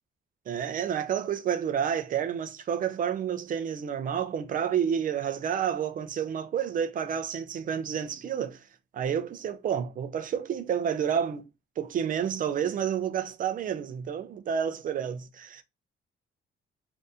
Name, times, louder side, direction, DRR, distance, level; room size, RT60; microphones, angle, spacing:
voice 1, 0.5-8.6 8.9-11.4 11.8-15.6, right 8 dB, 45° right, 0.4 m, -30 dB
2.7 x 2.5 x 3.3 m
cardioid pair, 170°, 20 cm